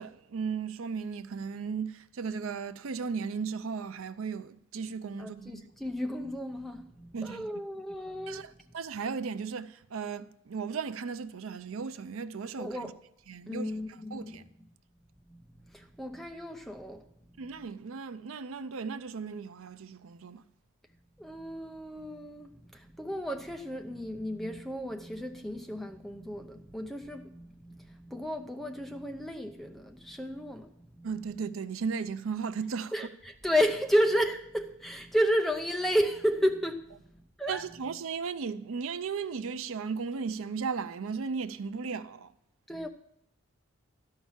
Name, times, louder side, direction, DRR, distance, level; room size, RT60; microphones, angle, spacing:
voice 1, 0.0-5.6 7.1-7.5 8.3-12.8 13.3-13.7 14.1-14.4 17.4-20.5 31.0-32.9 37.5-42.3, right 5 dB, 75° right, 0.5 m, -36 dB
voice 2, 5.2-8.6 12.6-12.9 13.5-14.7 15.3-17.7 21.2-31.4 32.9-37.8 42.7-42.9, equal, ahead, 0.6 m, -33 dB
12.5 x 5.7 x 7.2 m
head